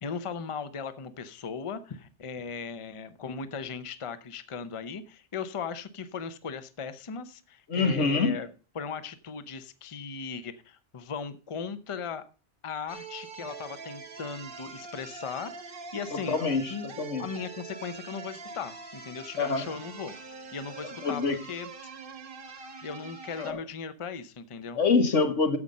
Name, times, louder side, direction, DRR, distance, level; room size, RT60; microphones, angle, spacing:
voice 1, 0.0-8.5 8.7-12.2 12.6-16.4 16.7-20.1 20.5-21.2 21.5-21.7 22.8-24.8, left 6 dB, 35° left, 12 dB, 0.7 m, -38 dB
voice 2, 7.7-8.4 16.3-17.2 19.4-19.6 21.0-21.4 23.4-23.6 24.7-25.6, left 4 dB, 85° left, 7 dB, 1.7 m, -25 dB
sound 1, 12.9-23.5, right 4 dB, 50° right, 1.1 m, -44 dB
9.8 x 7.4 x 5.3 m, 0.35 s
omnidirectional pair, 1.2 m